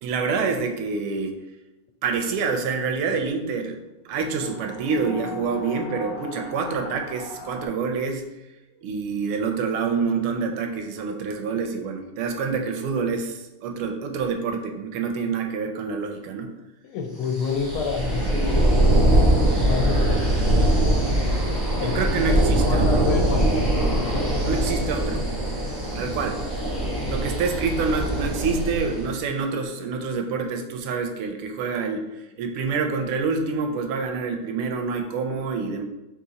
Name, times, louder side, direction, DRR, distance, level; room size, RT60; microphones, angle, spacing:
voice 1, 0.0-1.3 2.0-3.8 4.0-8.2 8.8-16.5 21.7-23.1 24.4-25.3 26.0-26.4 27.1-32.1 32.4-35.8, right 5 dB, 85° right, 4 dB, 1.5 m, -27 dB
sound 1, 4.1-7.7, left 3 dB, 50° left, 0.5 m, -39 dB
voice 2, 16.8-19.1 19.5-25.1, left 5 dB, 80° left, 4 dB, 1.5 m, -31 dB
sound 2, 17.3-29.1, right 1 dB, 20° right, 0.6 m, -22 dB
3.9 x 3.0 x 3.8 m, 1.0 s
omnidirectional pair, 2.4 m